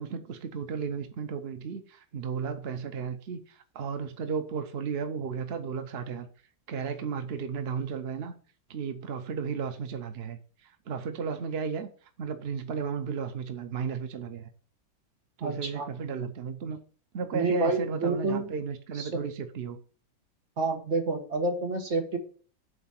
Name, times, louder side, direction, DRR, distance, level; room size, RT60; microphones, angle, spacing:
voice 1, 0.0-6.3 6.7-8.3 8.7-11.9 12.2-14.5 15.4-16.8 17.1-19.8, right 6 dB, 75° right, 0.5 m, -34 dB
voice 2, 15.4-15.9 17.3-18.5 18.9-19.3 20.6-22.2, right 3 dB, 40° right, 1.5 m, -28 dB
8.2 x 4.1 x 5.8 m
omnidirectional pair, 2.1 m